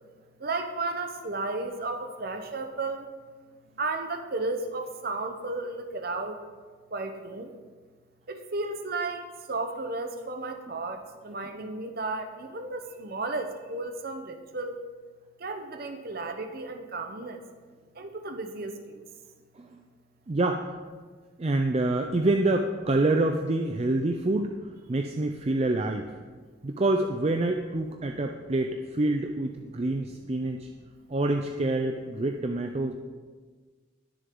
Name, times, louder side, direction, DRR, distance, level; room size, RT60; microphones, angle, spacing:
voice 1, 0.4-3.1 3.7-6.4 6.9-7.5 8.3-14.8 15.4-17.4 17.9-19.1 31.1-31.2, right 3 dB, 50° right, 6 dB, 0.9 m, -34 dB
voice 2, 20.3-20.7 21.4-24.5 24.9-26.1 26.6-30.7 31.1-32.9, right 2 dB, 30° right, 4 dB, 0.4 m, -26 dB
19.5 x 6.7 x 3.8 m, 1.5 s
head